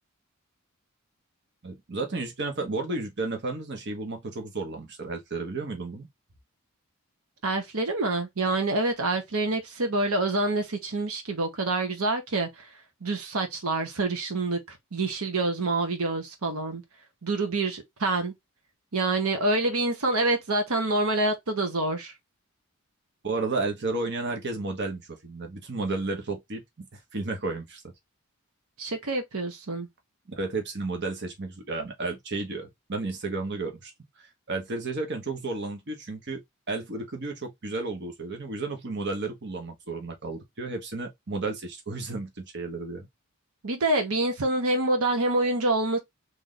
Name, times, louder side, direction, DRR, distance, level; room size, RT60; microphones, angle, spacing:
voice 1, 1.6-6.1 23.2-27.8 30.3-33.9 34.5-36.4 36.7-43.1, right 3 dB, 55° right, 1.0 m, -32 dB
voice 2, 7.4-12.7 13.0-16.8 17.2-18.3 18.9-22.1 28.8-29.9 43.6-46.0, right 2 dB, 85° right, 1.0 m, -27 dB
3.2 x 2.7 x 3.8 m
head